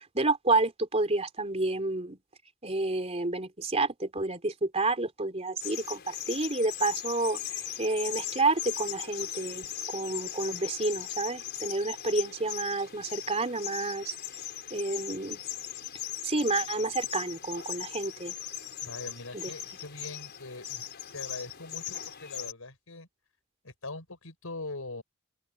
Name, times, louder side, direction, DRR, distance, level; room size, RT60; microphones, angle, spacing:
voice 1, 0.0-2.2 2.6-14.1 14.7-15.4 16.2-18.3 19.3-19.5, right 2 dB, 30° right, 3.6 m, -30 dB
sound 1, 5.6-22.5, left 11 dB, 50° left, 5.1 m, -39 dB
voice 2, 18.8-20.8 21.1-23.1 23.6-25.0, left 2 dB, 75° left, 5.8 m, -42 dB
open air
head